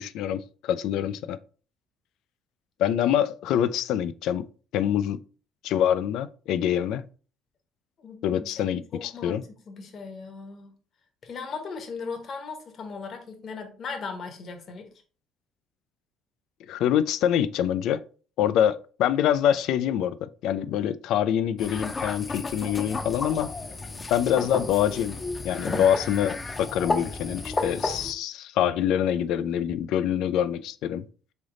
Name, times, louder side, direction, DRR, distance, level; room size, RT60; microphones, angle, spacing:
voice 1, 0.0-1.4 2.8-4.5 4.7-5.2 5.6-7.1 8.2-9.4 16.7-18.0 18.4-23.5 24.1-25.2 25.4-31.1, left 10 dB, 70° left, 0.3 m, -25 dB
voice 2, 8.0-10.7 11.2-14.9, left 5 dB, 45° left, 1.0 m, -38 dB
sound 1, 21.6-28.1, left 3 dB, 25° left, 0.6 m, -32 dB
3.9 x 3.4 x 3.7 m
cardioid pair, 125°, 0 cm